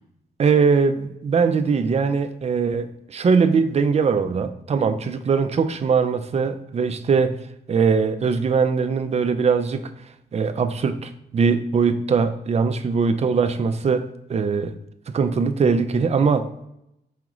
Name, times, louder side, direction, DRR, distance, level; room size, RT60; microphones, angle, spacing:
voice 1, 0.4-7.4 7.7-9.8 10.3-14.8 15.1-16.5, right 5 dB, 40° right, 9 dB, 0.4 m, -21 dB
4.9 x 3.6 x 3.0 m, 0.82 s
wide cardioid pair, 110°, 17 cm